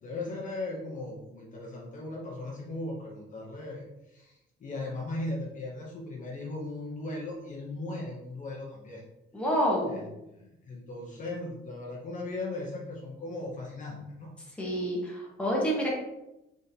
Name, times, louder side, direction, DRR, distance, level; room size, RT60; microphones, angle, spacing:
voice 1, 0.0-9.0 9.9-14.3, left 2 dB, 40° left, -2 dB, 0.6 m, -38 dB
voice 2, 9.3-10.0 14.6-15.9, equal, 5° left, -3 dB, 0.9 m, -28 dB
4.0 x 3.7 x 2.7 m, 0.92 s
wide cardioid pair, 180°, 21 cm